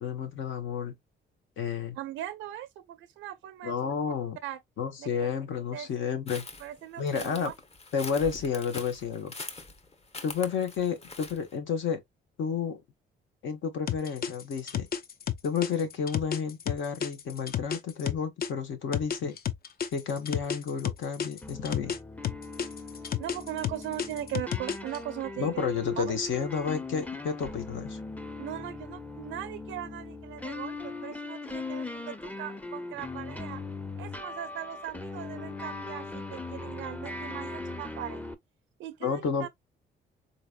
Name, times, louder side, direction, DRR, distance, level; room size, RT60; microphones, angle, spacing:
voice 1, 0.0-0.9 1.6-2.0 3.6-4.4 4.8-6.4 7.0-7.5 7.9-9.3 10.2-12.0 12.4-12.8 13.4-14.9 15.4-19.3 19.9-22.0 25.4-28.0 39.0-39.5, left 6 dB, 75° left, 1.2 m, -31 dB
voice 2, 2.0-3.9 4.4-4.6 5.0-5.3 5.7-5.9 6.6-7.5 23.2-25.7 26.0-26.1 28.4-33.6 34.0-38.3 38.8-39.5, right 13 dB, 90° right, 0.5 m, -39 dB
sound 1, 6.3-11.5, left 3 dB, 30° left, 0.9 m, -43 dB
sound 2, 13.9-18.5 18.9-22.0 22.2-25.0, left 9 dB, 50° left, 0.6 m, -31 dB
sound 3, 21.4-38.3, left 3 dB, 5° left, 0.5 m, -39 dB
4.0 x 2.9 x 2.3 m
cardioid pair, 90°, 20 cm